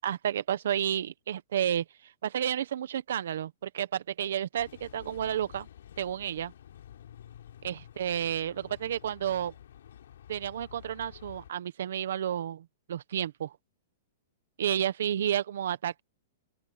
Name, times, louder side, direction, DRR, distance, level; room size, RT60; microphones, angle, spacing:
voice 1, 0.0-1.8 2.2-5.7 6.0-6.5 7.6-9.5 10.3-13.5 14.6-16.0, right 10 dB, 75° right, 1.2 m, -31 dB
sound 1, 4.5-11.5, left 10 dB, 80° left, 3.4 m, -51 dB
open air
hypercardioid pair, 160°, 0 cm